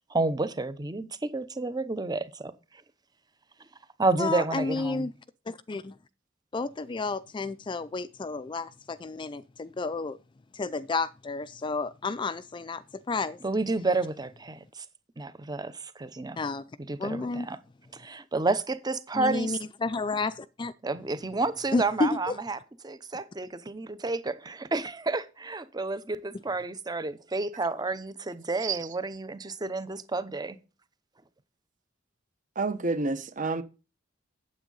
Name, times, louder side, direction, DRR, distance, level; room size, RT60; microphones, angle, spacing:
voice 1, 0.1-2.5 4.0-5.1 13.4-14.8 15.2-16.4 16.8-17.6 17.9-19.6 20.8-30.6, right 3 dB, 20° right, 0.8 m, -30 dB
voice 2, 4.2-5.1 5.5-6.0 6.5-10.2 10.5-13.4 16.4-16.6 17.0-17.5 19.1-20.7 21.7-22.4, left 3 dB, 25° left, 0.4 m, -31 dB
voice 3, 32.6-33.6, right 3 dB, 40° right, 1.0 m, -29 dB
8.8 x 8.2 x 3.9 m
head